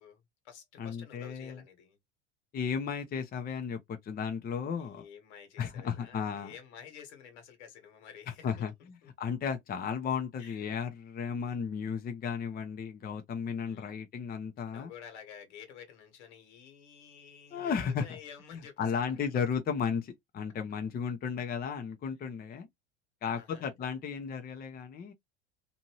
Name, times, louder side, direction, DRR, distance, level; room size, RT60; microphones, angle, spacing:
voice 1, 0.0-2.0 4.7-8.7 9.0-9.3 10.4-10.6 11.4-11.6 13.7-14.0 14.7-18.9 23.3-23.7, left 8 dB, 75° left, 1.5 m, -51 dB
voice 2, 0.8-1.6 2.5-5.0 5.6-6.5 8.4-8.7 9.2-14.9 17.5-18.2 18.8-22.7 23.2-25.1, left 6 dB, 25° left, 0.6 m, -34 dB
2.7 x 2.6 x 2.9 m
hypercardioid pair, 95°, 34 cm